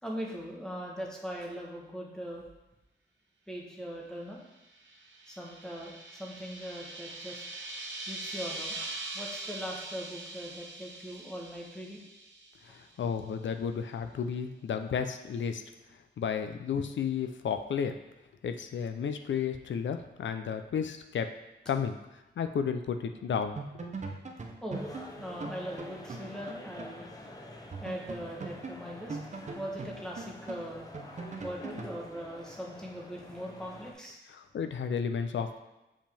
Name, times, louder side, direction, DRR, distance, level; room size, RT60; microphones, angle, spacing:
voice 1, 0.0-2.4 3.5-4.4 5.3-7.4 8.1-8.8 9.1-12.0 24.6-27.1 27.8-29.2 29.5-30.9 31.4-34.2, equal, 5° left, -2 dB, 1.2 m, -40 dB
sound 1, 4.6-12.9, right 2 dB, 80° right, 0.9 m, -42 dB
voice 2, 12.7-15.6 16.2-18.0 18.4-21.3 21.7-22.0 22.4-23.6 23.8-23.9 34.3-35.5, left 7 dB, 80° left, 8 dB, 0.5 m, -32 dB
sound 2, 23.1-23.3 23.6-27.0 27.3-27.4 27.7-32.0, right 4 dB, 40° right, 0.7 m, -41 dB
sound 3, 24.7-33.9, left 1 dB, 20° left, 0.7 m, -48 dB
7.2 x 5.2 x 3.4 m, 1.0 s
wide cardioid pair, 155°, 19 cm